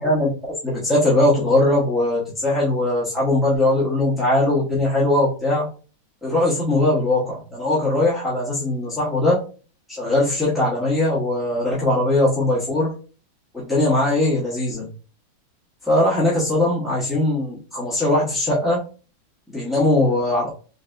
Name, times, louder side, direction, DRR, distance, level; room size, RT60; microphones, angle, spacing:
voice 1, 0.0-0.3 0.6-5.7 6.2-9.4 9.9-12.9 13.5-14.9 15.9-18.8 19.5-20.5, left 1 dB, ahead, -8 dB, 0.6 m, -20 dB
4.0 x 3.3 x 2.6 m, 0.38 s
omnidirectional pair, 2.1 m